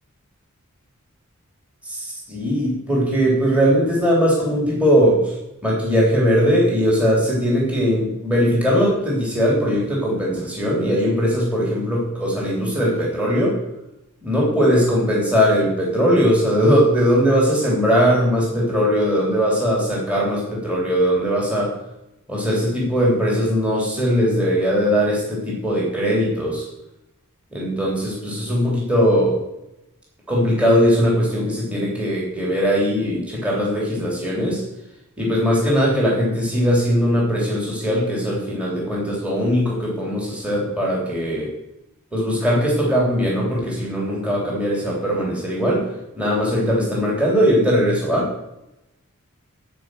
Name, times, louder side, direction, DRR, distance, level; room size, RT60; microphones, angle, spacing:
voice 1, 1.8-5.3 5.6-13.6 14.2-21.7 22.3-26.7 27.5-29.4 30.3-34.6 35.2-41.5 42.1-45.9 46.2-48.3, equal, 5° right, -5 dB, 3.4 m, -20 dB
16.0 x 5.3 x 7.8 m, 0.90 s
head